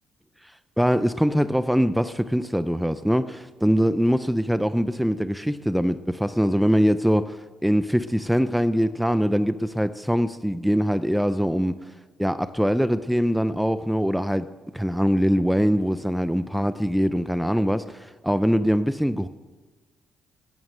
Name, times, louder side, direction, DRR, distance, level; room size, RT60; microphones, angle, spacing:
voice 1, 0.8-11.8 12.2-14.5 14.7-19.3, equal, ahead, 13 dB, 0.5 m, -23 dB
18.0 x 9.5 x 6.6 m, 1.3 s
cardioid pair, 90°, 0 cm